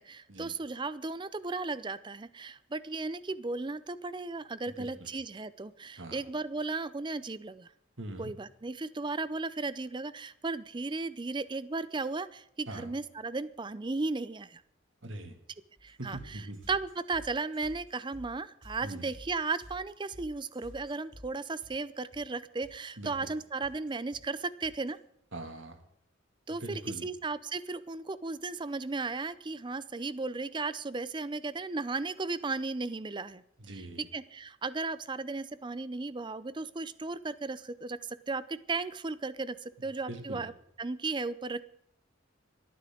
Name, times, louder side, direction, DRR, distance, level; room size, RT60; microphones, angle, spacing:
voice 1, 0.0-7.7 8.2-14.6 15.8-16.4 16.7-25.0 26.5-33.4 34.1-40.5 40.8-41.7, right 3 dB, 25° right, 16 dB, 0.5 m, -35 dB
voice 2, 4.7-5.1 6.0-6.2 8.0-8.3 12.7-12.9 15.0-15.3 16.0-16.7 18.8-19.1 23.0-23.3 25.3-25.8 26.6-27.1 33.6-34.1 40.1-40.5, right 1 dB, 85° right, 5 dB, 2.3 m, -42 dB
sound 1, 15.8-24.9, equal, 65° right, 5.9 m, -52 dB
27.5 x 9.4 x 3.8 m, 0.75 s
head